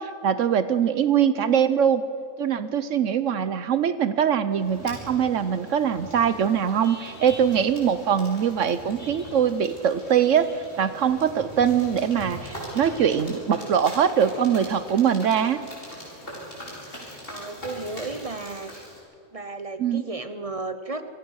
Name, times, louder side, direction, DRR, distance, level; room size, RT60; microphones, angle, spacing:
voice 1, 0.0-2.0 2.4-15.6 19.8-20.1, right 8 dB, 70° right, 13 dB, 1.1 m, -22 dB
sound 1, 4.5-19.0, equal, 45° left, 5.7 m, -41 dB
voice 2, 17.3-18.9 19.3-21.1, right 3 dB, 30° right, 10 dB, 0.8 m, -34 dB
26.0 x 18.0 x 6.4 m, 2.5 s
omnidirectional pair, 1.4 m